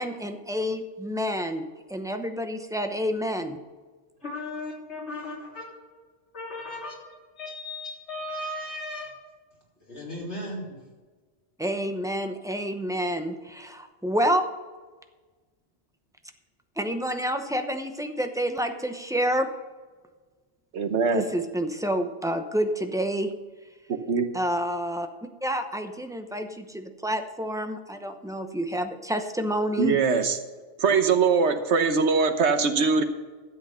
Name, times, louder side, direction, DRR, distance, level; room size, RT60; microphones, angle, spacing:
voice 1, 0.0-3.6 11.6-14.5 16.8-19.5 21.1-23.3 24.3-25.1 25.4-30.0, equal, 5° right, 6 dB, 0.7 m, -28 dB
voice 2, 4.2-5.7 6.3-7.0 7.4-9.2 9.9-10.8, left 1 dB, 80° left, -4 dB, 3.8 m, -36 dB
voice 3, 20.7-21.2 24.1-24.3 29.8-30.4 30.8-33.0, right 5 dB, 90° right, 8 dB, 1.3 m, -22 dB
12.5 x 8.0 x 5.6 m, 1.3 s
omnidirectional pair, 1.1 m